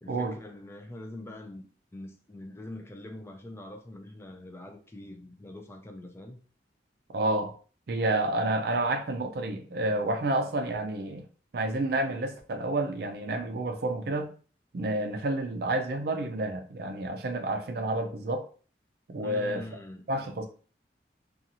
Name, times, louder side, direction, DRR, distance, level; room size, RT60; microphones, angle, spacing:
voice 1, 0.0-1.7 1.9-6.4 19.2-20.0, left 1 dB, 15° left, 0.3 m, -43 dB
voice 2, 7.1-7.6 7.9-11.2 11.5-14.3 14.7-18.5 19.1-19.7 20.1-20.5, right 2 dB, 60° right, 0.4 m, -29 dB
2.7 x 2.3 x 2.8 m
head